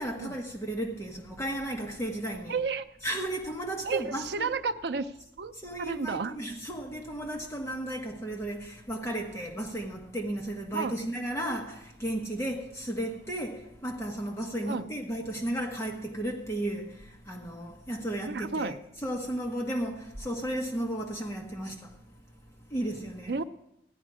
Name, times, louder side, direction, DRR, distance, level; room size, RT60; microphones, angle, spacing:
voice 1, 0.0-2.6 3.0-4.5 5.6-18.7 19.0-21.9 22.7-23.3, right 1 dB, 15° left, 1.4 m, -34 dB
voice 2, 2.5-2.9 3.8-5.5 5.8-6.3 10.7-10.9 14.7-14.8 18.3-18.8 23.3-23.4, right 4 dB, 65° right, 0.5 m, -31 dB
15.0 x 11.0 x 4.9 m
head